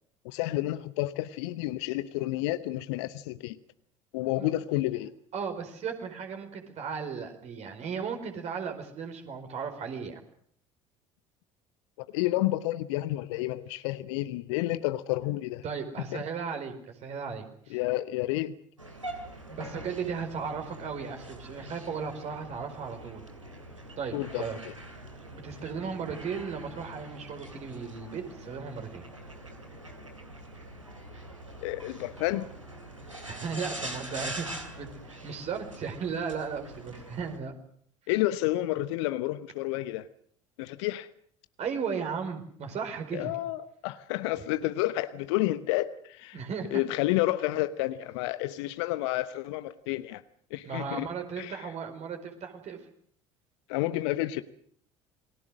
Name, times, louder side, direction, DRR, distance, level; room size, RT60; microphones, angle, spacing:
voice 1, 0.2-3.6 4.1-5.1 12.0-15.6 16.1-16.2 17.7-18.6 24.1-24.4 31.6-32.5 38.1-40.0 40.6-41.1 43.1-46.4 46.7-50.2 50.5-51.1 51.4-51.7 53.7-54.4, left 16 dB, 60° left, 13 dB, 1.0 m, -30 dB
voice 2, 5.3-10.2 15.6-17.8 19.5-23.2 24.0-24.6 25.3-29.0 33.2-37.5 41.6-43.3 46.3-46.8 50.6-52.8, right 6 dB, 45° right, 5 dB, 4.7 m, -36 dB
sound 1, 18.8-37.4, right 1 dB, 90° right, 2.6 m, -44 dB
28.5 x 21.0 x 6.5 m, 0.62 s
figure-of-eight pair, 60°, 16 cm